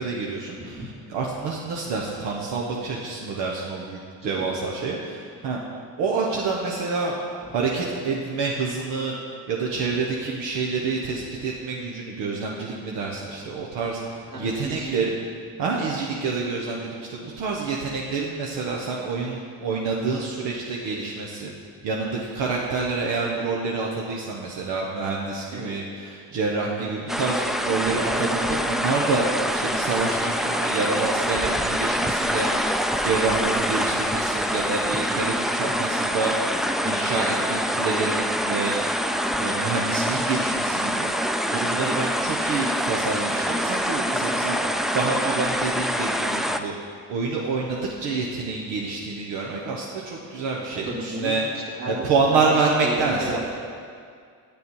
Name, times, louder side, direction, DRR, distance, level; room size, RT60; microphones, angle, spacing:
voice 1, 0.0-5.6 6.0-7.2 7.5-9.1 9.5-15.1 15.6-21.5 21.8-32.5 33.0-38.8 39.4-41.1 41.5-44.6 44.9-46.7 47.1-51.4 51.8-53.4, right 4 dB, 85° right, -2 dB, 1.0 m, -27 dB
voice 2, 0.6-0.9 4.2-4.3 14.3-15.0 21.8-21.9 25.5-25.7 26.8-27.0 35.6-35.8 41.8-42.0 44.1-44.8 50.8-52.4 52.8-53.5, right 2 dB, 50° right, -3 dB, 2.4 m, -34 dB
sound 1, 27.1-46.6, equal, ahead, 0.4 m, -25 dB
8.1 x 6.8 x 5.4 m, 2.2 s
supercardioid pair, 60°, 42 cm